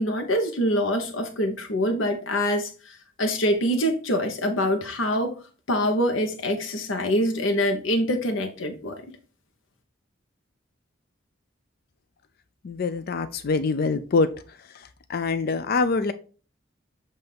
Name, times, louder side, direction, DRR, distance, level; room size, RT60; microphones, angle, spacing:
voice 1, 0.0-5.3 5.7-8.9, equal, 80° left, 1.0 m, -25 dB
voice 2, 12.6-14.3 14.7-16.1, left 4 dB, 50° left, 0.4 m, -25 dB
7.6 x 2.7 x 5.3 m
head